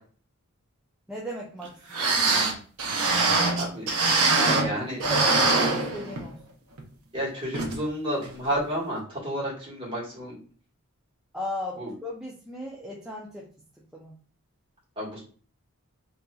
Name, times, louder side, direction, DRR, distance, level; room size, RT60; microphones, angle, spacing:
voice 1, 1.1-2.1 4.5-6.4 11.3-13.5 13.9-14.1, equal, 5° right, -4 dB, 0.4 m, -36 dB
sound 1, 1.6-1.7 1.9-4.7 5.0-6.4 6.8-6.9 7.5-7.8 8.2-8.3, right 3 dB, 90° right, 0.7 m, -23 dB
voice 2, 3.5-3.9 4.2-5.0 7.1-10.4 11.8-11.9 15.0-15.2, equal, 25° right, -6 dB, 1.5 m, -31 dB
4.1 x 2.6 x 2.3 m, 0.43 s
head